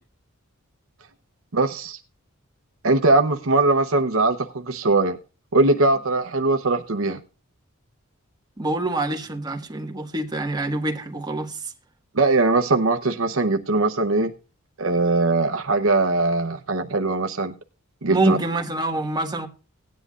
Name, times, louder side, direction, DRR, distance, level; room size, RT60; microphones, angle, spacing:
voice 1, 1.5-2.0 2.8-5.2 5.5-7.2 12.1-14.3 14.8-17.5 18.0-18.4, right 3 dB, 70° right, 0.9 m, -21 dB
voice 2, 8.6-11.7 18.1-19.5, right 2 dB, 20° right, 1.7 m, -26 dB
18.0 x 10.5 x 2.4 m
head